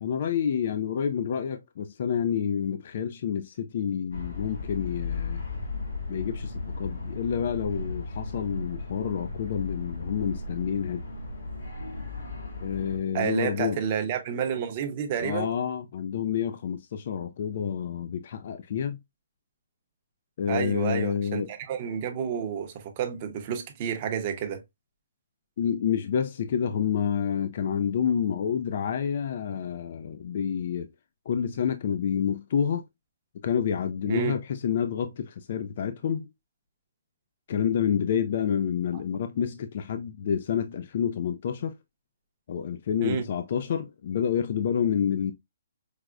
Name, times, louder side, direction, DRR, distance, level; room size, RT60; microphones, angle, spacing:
voice 1, 0.0-5.4 6.1-11.0 12.6-13.8 15.2-19.0 20.4-21.5 25.6-30.9 31.3-32.9 33.4-36.3 37.5-41.8 42.5-45.3, left 8 dB, 45° left, 0.3 m, -28 dB
sound 1, 4.1-13.0, left 3 dB, 90° left, 2.0 m, -35 dB
voice 2, 13.1-15.5 20.5-24.6 34.1-34.3 43.0-43.2, right 8 dB, 30° right, 0.7 m, -30 dB
4.7 x 2.1 x 2.4 m
hypercardioid pair, 170°, 0 cm